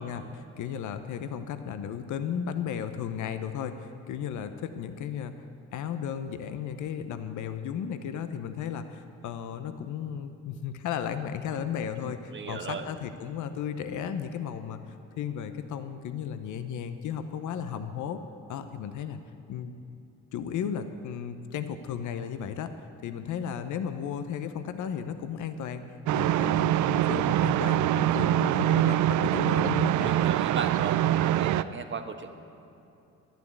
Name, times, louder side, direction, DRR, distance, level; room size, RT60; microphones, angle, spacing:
voice 1, 0.0-5.5 5.7-18.2 18.5-19.2 19.5-19.7 20.3-25.8 26.1-30.1, left 8 dB, 80° left, 10 dB, 0.8 m, -34 dB
voice 2, 12.3-12.9 30.0-32.3, right 5 dB, 40° right, 7 dB, 1.2 m, -36 dB
sound 1, 26.1-31.6, right 13 dB, 75° right, 0.5 m, -24 dB
11.5 x 10.5 x 9.5 m, 2.8 s
cardioid pair, 90°, 30 cm